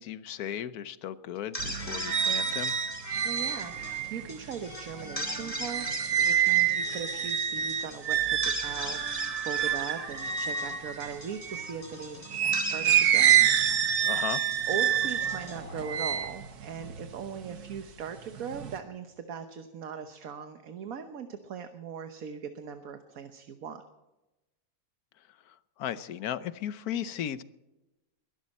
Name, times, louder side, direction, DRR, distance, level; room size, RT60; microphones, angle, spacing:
voice 1, 0.0-2.8 14.1-14.4 25.8-27.4, left 10 dB, 85° left, 14 dB, 1.3 m, -35 dB
sound 1, 1.4-16.6, left 1 dB, 25° left, 2.3 m, -40 dB
sound 2, 1.6-11.8 12.3-17.8 18.2-18.8, right 9 dB, 90° right, 1.6 m, -28 dB
voice 2, 3.2-13.5 14.7-23.8, right 6 dB, 70° right, 8 dB, 1.5 m, -39 dB
22.5 x 11.5 x 4.3 m, 1.0 s
omnidirectional pair, 1.6 m